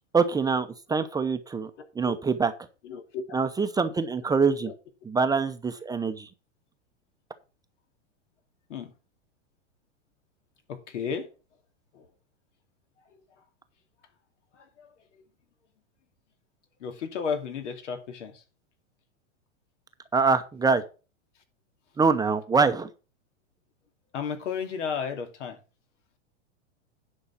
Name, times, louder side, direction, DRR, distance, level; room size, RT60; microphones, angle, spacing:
voice 1, 0.1-1.7 2.0-2.5 3.3-4.7 5.0-6.3 20.1-20.8 22.0-22.9, right 4 dB, 10° right, 0.7 m, -24 dB
voice 2, 1.8-2.1 2.8-3.2 4.5-4.7 8.7-8.9 10.7-11.3 11.9-12.1 13.1-13.2 14.5-14.9 16.8-18.4 24.1-25.6, left 6 dB, 80° left, 2.6 m, -34 dB
10.5 x 5.5 x 5.5 m
hypercardioid pair, 130°, 35 cm